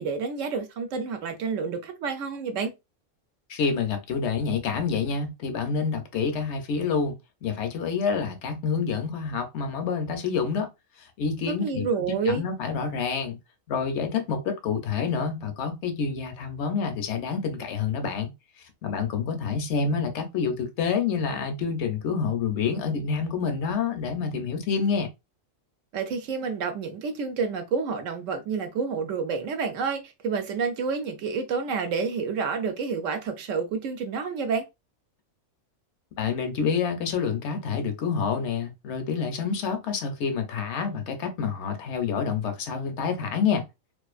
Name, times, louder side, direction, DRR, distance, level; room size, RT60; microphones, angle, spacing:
voice 1, 0.0-2.7 11.6-12.4 25.9-34.6, right 5 dB, 70° right, 0.9 m, -29 dB
voice 2, 3.5-10.7 11.2-11.9 12.2-13.4 13.7-18.3 18.8-25.1 36.2-43.7, left 5 dB, 65° left, 0.8 m, -28 dB
2.5 x 2.4 x 2.3 m
omnidirectional pair, 1.4 m